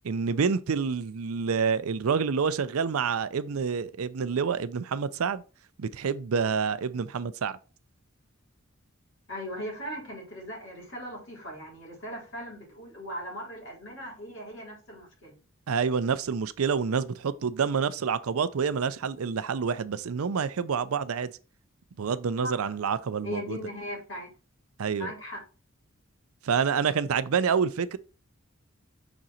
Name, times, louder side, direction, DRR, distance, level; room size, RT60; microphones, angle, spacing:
voice 1, 0.0-5.4 5.8-7.6 15.7-21.3 22.0-23.6 24.8-25.1 26.4-28.0, right 6 dB, 85° right, 0.5 m, -28 dB
voice 2, 9.3-15.3 22.4-22.7 23.2-24.3 25.0-25.4, equal, 60° left, 3.5 m, -39 dB
6.1 x 3.8 x 4.2 m
head